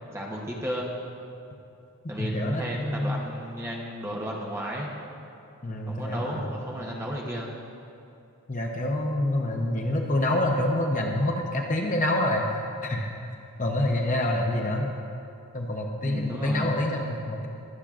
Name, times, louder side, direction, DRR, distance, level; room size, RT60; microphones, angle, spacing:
voice 1, 0.1-0.9 2.1-4.9 5.9-7.6 16.0-16.7, equal, 10° right, -3 dB, 1.0 m, -33 dB
voice 2, 2.2-3.3 5.6-6.6 8.5-13.1 13.6-14.9 15.5-17.5, left 1 dB, 35° left, 1 dB, 0.7 m, -27 dB
22.0 x 7.4 x 2.5 m, 2.7 s
head